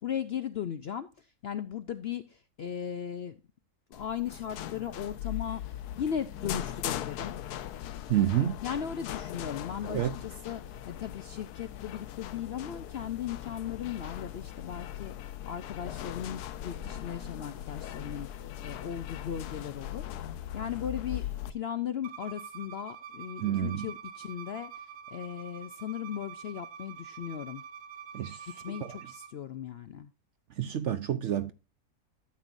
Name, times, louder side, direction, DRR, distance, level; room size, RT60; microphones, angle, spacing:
voice 1, 0.0-3.4 3.9-7.3 8.6-18.3 18.6-27.6 28.6-30.1, left 9 dB, 65° left, 0.6 m, -37 dB
sound 1, 3.9-21.5, left 11 dB, 85° left, 1.2 m, -39 dB
voice 2, 8.1-8.6 9.9-10.1 23.4-23.9 28.1-29.0 30.6-31.5, right 11 dB, 60° right, 0.8 m, -29 dB
Bowed string instrument, 22.0-29.3, right 8 dB, 80° right, 1.4 m, -46 dB
12.5 x 7.7 x 2.6 m
omnidirectional pair, 1.6 m